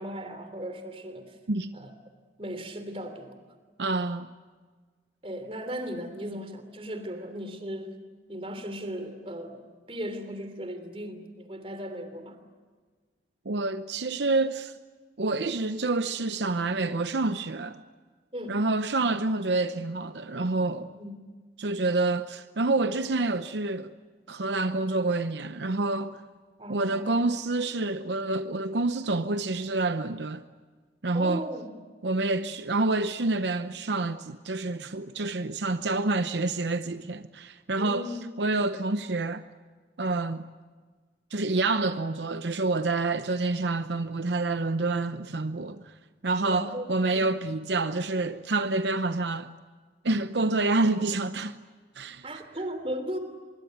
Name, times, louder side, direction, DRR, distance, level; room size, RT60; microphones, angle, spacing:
voice 1, 0.0-1.4 1.7-1.9 2.4-3.4 5.2-8.0 8.3-9.6 9.9-12.4 18.3-18.6 20.9-21.1 26.6-27.2 31.1-31.7 37.7-38.2 46.5-47.3 52.2-53.2, equal, 35° right, 3.1 m, -37 dB
voice 2, 3.8-4.3 13.5-14.7 15.2-17.8 18.5-21.0 21.6-23.9 24.3-26.2 26.7-30.4 31.0-31.5 32.0-38.1 38.4-39.4 40.0-40.4 41.3-45.9 46.2-49.5 50.0-51.6 52.0-52.2, right 2 dB, 85° right, 0.8 m, -28 dB
25.0 x 23.0 x 9.3 m
head